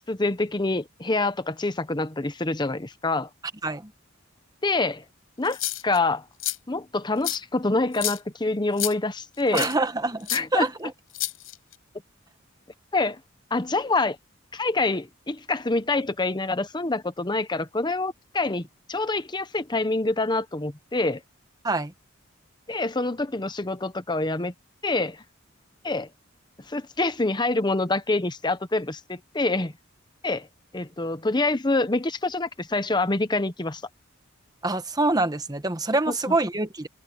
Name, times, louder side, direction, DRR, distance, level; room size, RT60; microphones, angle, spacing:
voice 1, 0.1-3.3 4.6-5.0 5.4-6.2 6.7-9.7 10.3-10.7 12.9-13.2 13.5-14.2 14.5-21.2 22.7-24.5 24.8-25.2 25.8-26.1 26.7-29.7 30.2-30.5 30.7-33.8 36.3-36.4, left 2 dB, 20° left, 0.9 m, -26 dB
sound 1, 5.4-6.0 6.4-6.6 7.2-7.4 7.9-8.2 8.8-8.9 9.5-9.7 10.3-10.4 11.1-11.7, left 15 dB, 80° left, 7.7 m, -29 dB
voice 2, 9.5-10.9 21.6-21.9 34.6-36.9, right 2 dB, 20° right, 1.3 m, -25 dB
head